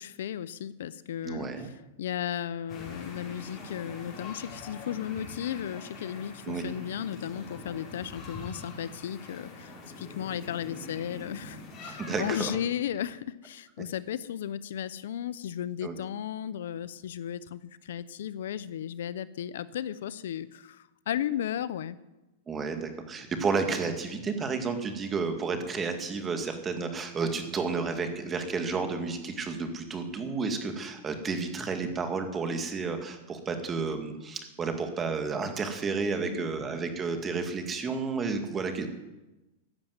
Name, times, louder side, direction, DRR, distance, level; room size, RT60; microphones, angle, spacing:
voice 1, 0.0-22.0 36.1-36.5, left 10 dB, 75° left, 17 dB, 0.6 m, -35 dB
voice 2, 1.2-1.7 6.5-6.6 12.0-12.5 15.8-16.0 22.5-38.9, right 4 dB, 20° right, 6 dB, 2.0 m, -31 dB
sound 1, 2.7-12.3, left 3 dB, 30° left, 5.1 m, -44 dB
14.5 x 7.2 x 9.3 m, 1.0 s
hypercardioid pair, 135°, 0 cm